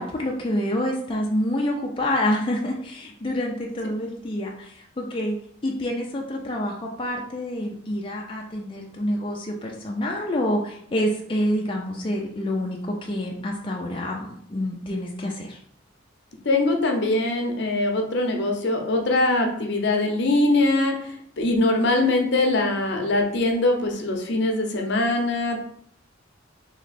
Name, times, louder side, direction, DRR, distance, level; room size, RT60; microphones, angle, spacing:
voice 1, 0.0-5.4 5.6-15.6, left 1 dB, 25° left, -1 dB, 0.5 m, -27 dB
voice 2, 16.4-25.6, left 2 dB, 60° left, 2 dB, 0.7 m, -22 dB
3.1 x 3.0 x 4.2 m, 0.66 s
head